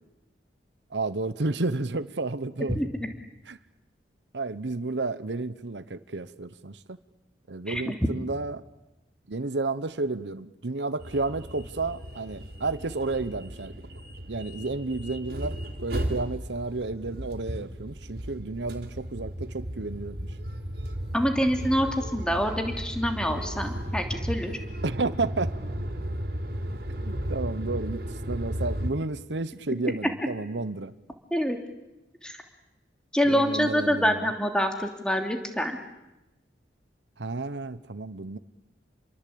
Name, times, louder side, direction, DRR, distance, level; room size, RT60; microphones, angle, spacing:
voice 1, 0.9-2.8 3.5-3.6 4.3-7.0 7.5-8.6 9.3-13.7 14.3-20.3 24.8-25.5 27.0-30.9 33.2-34.2 37.2-38.4, right 3 dB, 80° right, 13 dB, 1.0 m, -31 dB
sound 1, 11.0-28.9, equal, 60° right, 3.6 m, -35 dB
voice 2, 21.1-24.5 31.3-31.6 32.2-32.4 33.1-35.8, equal, 5° left, 4 dB, 2.9 m, -26 dB
29.0 x 22.5 x 8.7 m, 0.95 s
head